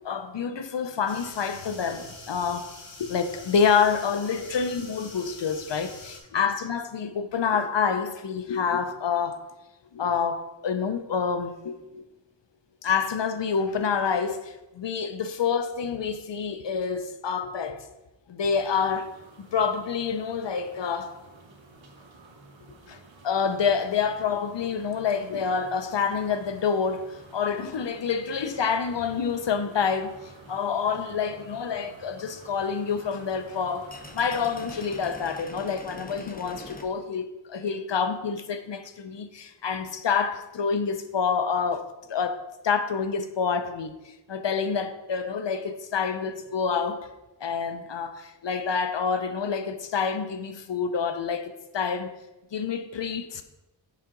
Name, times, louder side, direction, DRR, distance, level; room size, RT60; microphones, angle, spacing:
voice 1, 0.0-2.7 3.0-9.5 9.9-12.0 12.8-17.9 18.3-21.2 22.9-23.0 23.2-47.1 47.4-52.1 52.5-53.4, left 6 dB, 70° left, 0.7 m, -28 dB
sound 1, 1.1-6.2, left 3 dB, 85° left, 1.2 m, -45 dB
sound 2, 18.5-35.4, right 2 dB, 90° right, 1.2 m, -50 dB
sound 3, 24.7-36.9, left 2 dB, 20° left, 0.8 m, -49 dB
7.3 x 5.6 x 3.8 m
cardioid pair, 45°, 45 cm